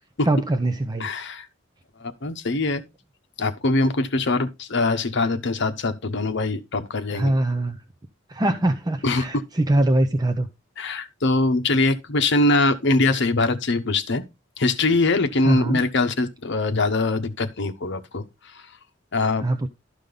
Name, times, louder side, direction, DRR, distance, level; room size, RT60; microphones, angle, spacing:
voice 1, 0.3-1.1 7.1-7.8 8.3-10.5 15.4-15.8 19.4-19.7, right 1 dB, 20° right, 0.6 m, -22 dB
voice 2, 1.0-1.5 2.0-2.8 3.4-7.3 9.0-9.4 10.8-14.2 14.6-18.2 18.5-18.6 19.1-19.5, left 2 dB, 60° left, 1.0 m, -22 dB
12.5 x 5.1 x 3.9 m
head